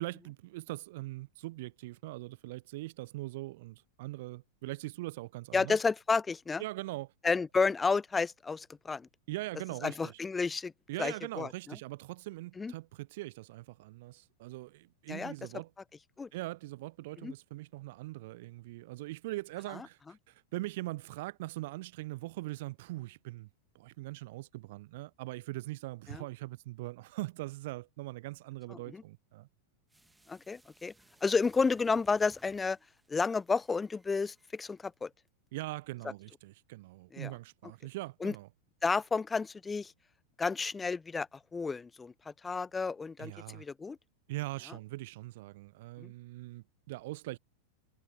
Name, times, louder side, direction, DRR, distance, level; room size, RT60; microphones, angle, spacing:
voice 1, 0.0-5.8 6.6-7.1 9.3-10.2 10.9-15.7 16.3-20.0 20.3-23.5 23.7-29.5 35.5-38.5 43.2-43.7 44.3-47.4, right 19 dB, 50° right, 0.3 m, -41 dB
voice 2, 5.5-6.6 7.2-9.1 9.8-10.7 11.0-11.5 12.6-12.7 15.1-15.3 16.2-16.3 17.2-17.3 26.1-26.2 28.7-29.0 30.3-30.9 31.2-32.8 33.1-35.1 37.1-37.3 38.2-38.3 38.8-39.9 40.4-44.0 46.0-46.1, left 4 dB, 15° left, 0.4 m, -31 dB
sound 1, 29.9-34.9 35.3-35.4, right 2 dB, 5° right, 2.1 m, -63 dB
figure-of-eight pair, 90°, 0 cm